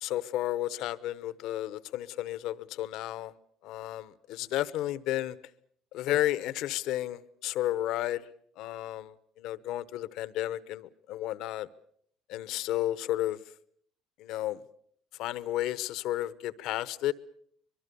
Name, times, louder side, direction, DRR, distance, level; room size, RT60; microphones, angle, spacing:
voice 1, 0.0-3.3 3.6-5.4 5.9-8.3 8.6-11.7 12.3-13.4 14.2-14.6 15.2-17.1, left 14 dB, 75° left, 17 dB, 1.0 m, -32 dB
24.5 x 22.5 x 6.9 m, 0.65 s
supercardioid pair, 75°, 0 cm